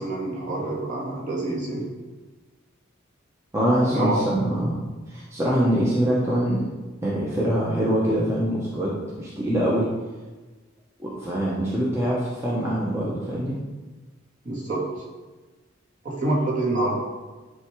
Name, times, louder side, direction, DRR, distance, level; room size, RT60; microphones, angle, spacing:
voice 1, 0.0-1.8 3.9-4.2 14.4-14.8 16.0-16.9, right 2 dB, 40° right, -5 dB, 2.4 m, -26 dB
voice 2, 3.5-4.8 5.1-6.7 7.0-9.9 11.0-13.6, equal, 15° right, -7 dB, 1.3 m, -24 dB
10.5 x 3.6 x 4.8 m, 1.3 s
head